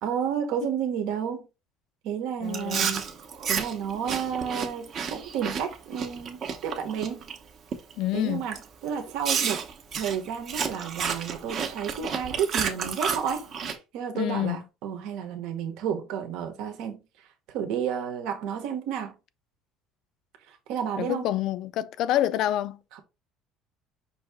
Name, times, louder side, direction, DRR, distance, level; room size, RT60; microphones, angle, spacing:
voice 1, 0.0-1.5 2.0-3.1 3.5-7.3 8.1-9.7 10.0-13.5 13.9-17.0 17.5-19.2 20.5-21.3, right 8 dB, 70° right, 1.0 m, -31 dB
voice 2, 2.4-2.9 8.0-8.5 14.1-14.6 21.0-22.8, left 13 dB, 50° left, 0.3 m, -27 dB
Chewing mastication, 2.5-7.4 7.7-8.0 8.5-8.6 9.2-13.8, right 6 dB, 35° right, 0.7 m, -31 dB
5.4 x 2.8 x 3.4 m
cardioid pair, 170°, 0 cm